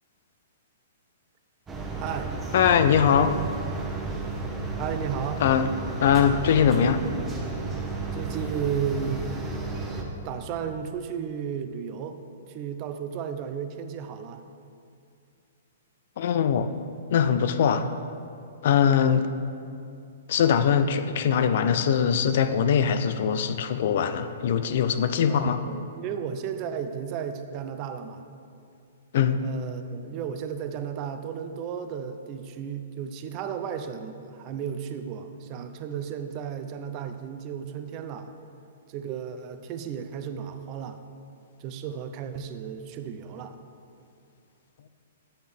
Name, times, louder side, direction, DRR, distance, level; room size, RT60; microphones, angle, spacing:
sound 1, 1.7-10.0, right 3 dB, 15° right, 1.1 m, -32 dB
voice 1, 2.0-2.3 4.8-5.4 7.1-7.3 8.1-9.3 10.2-12.2 12.5-14.4 25.3-28.2 29.4-38.3 38.9-41.0 41.6-43.6, right 8 dB, 40° right, 8 dB, 0.6 m, -34 dB
voice 2, 2.5-3.4 5.4-5.7 6.0-7.1 16.2-16.7 17.1-17.9 18.6-19.3 20.3-25.6 29.1-29.4, left 8 dB, 60° left, 10 dB, 0.4 m, -22 dB
8.6 x 7.9 x 3.5 m, 2.4 s
hypercardioid pair, 120°, 0 cm